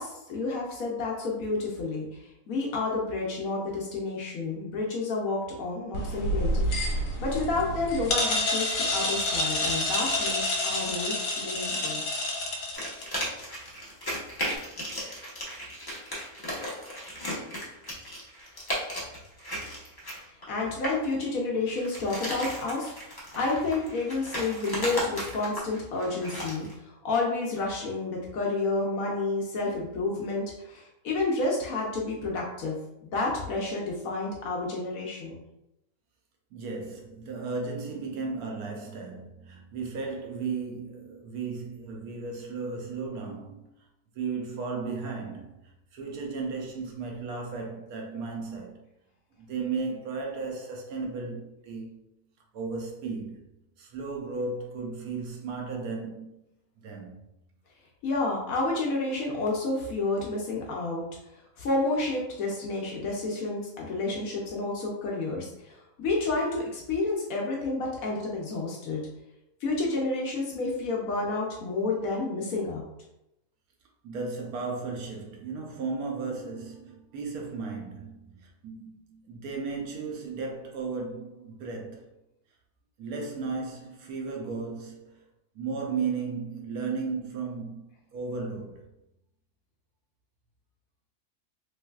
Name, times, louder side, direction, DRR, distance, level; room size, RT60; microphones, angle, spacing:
voice 1, 0.0-6.6 7.2-12.0 20.2-32.8 33.0-35.4 58.0-61.0 61.6-69.0 69.6-72.8, left 3 dB, 70° left, 1.0 m, -30 dB
sound 1, 5.9-13.4, left 1 dB, 90° left, 1.3 m, -28 dB
sound 2, 12.7-21.1 21.7-26.7, equal, 20° left, 0.6 m, -36 dB
voice 2, 36.5-43.7 44.1-45.5 45.9-48.8 49.4-52.0 52.5-53.4 53.8-56.3 56.8-57.2 74.0-82.1 83.0-85.2 85.5-88.9, right 4 dB, 80° right, 1.1 m, -35 dB
3.2 x 3.1 x 2.3 m
omnidirectional pair, 1.6 m